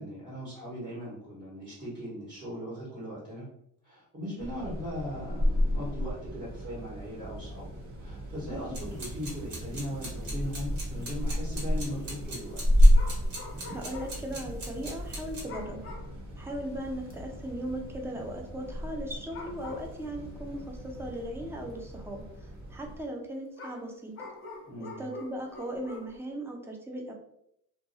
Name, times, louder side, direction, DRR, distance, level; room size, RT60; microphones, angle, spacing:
voice 1, 0.0-3.5 3.8-7.7 8.0-12.6 24.7-25.0, equal, 25° right, -10 dB, 1.3 m, -39 dB
sound 1, 4.4-23.0, equal, 50° right, 0.9 m, -30 dB
sound 2, 8.7-15.4, right 1 dB, 65° right, 1.3 m, -39 dB
sound 3, 9.2-9.5 9.8-9.9 10.2-10.4 11.2-11.5 12.9-14.3 14.7-14.8 15.5-16.2 16.6-16.7 17.1-17.6 19.0-19.1 19.3-20.3 21.1-21.2 23.6-26.2, left 3 dB, 35° left, 0.7 m, -46 dB
voice 2, 13.6-16.0 16.4-22.2 22.7-24.1 25.0-27.1, right 1 dB, 5° right, 1 dB, 0.4 m, -38 dB
2.6 x 2.3 x 2.7 m, 0.74 s
cardioid pair, 115°, 38 cm